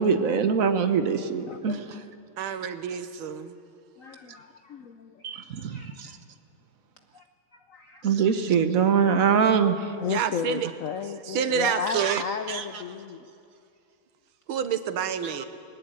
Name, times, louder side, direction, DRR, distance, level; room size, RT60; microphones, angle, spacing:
voice 1, 0.0-2.0 5.2-6.1 8.0-9.9 11.9-12.2 12.5-12.6 15.2-15.4, right 6 dB, 50° right, 9 dB, 1.2 m, -23 dB
voice 2, 1.5-1.9 2.5-2.6 4.0-5.4 5.7-6.1 7.7-8.3 10.0-13.3, left 7 dB, 70° left, 8 dB, 0.8 m, -34 dB
voice 3, 2.4-3.5 10.1-10.7 11.3-12.2 14.5-15.5, right 8 dB, 85° right, 10 dB, 1.9 m, -28 dB
21.0 x 18.5 x 8.9 m, 2.4 s
omnidirectional pair, 2.2 m